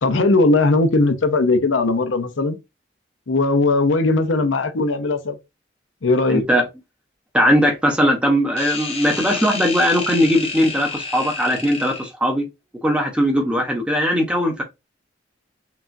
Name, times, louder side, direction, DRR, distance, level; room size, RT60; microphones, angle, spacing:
voice 1, 0.0-2.6 3.3-5.4 6.0-6.4, left 2 dB, 80° left, 0.7 m, -18 dB
voice 2, 6.3-6.6 7.3-12.4 12.8-14.6, equal, 5° right, 0.9 m, -19 dB
sound 1, 8.6-12.1, left 4 dB, 30° left, 0.8 m, -29 dB
5.9 x 2.4 x 2.6 m
head